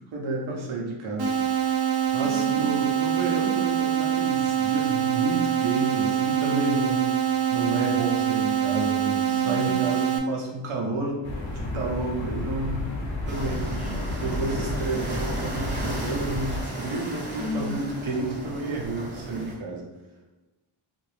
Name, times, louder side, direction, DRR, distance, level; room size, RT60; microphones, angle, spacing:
voice 1, 0.1-1.4 2.1-7.0 7.5-11.2 11.5-12.9 13.3-13.6 14.1-19.9, right 2 dB, 75° right, -2 dB, 0.9 m, -30 dB
sound 1, 1.2-10.2, right 10 dB, 50° right, 0.5 m, -24 dB
voice 2, 2.2-2.8 9.2-9.9 13.6-14.6 17.4-17.9, left 1 dB, 15° left, -4 dB, 0.4 m, -36 dB
sound 2, 11.2-16.6, left 1 dB, 65° left, 0.9 m, -31 dB
sound 3, 13.3-19.6, right 1 dB, 20° right, 0.8 m, -35 dB
2.8 x 2.6 x 3.2 m, 1.1 s
wide cardioid pair, 125°, 49 cm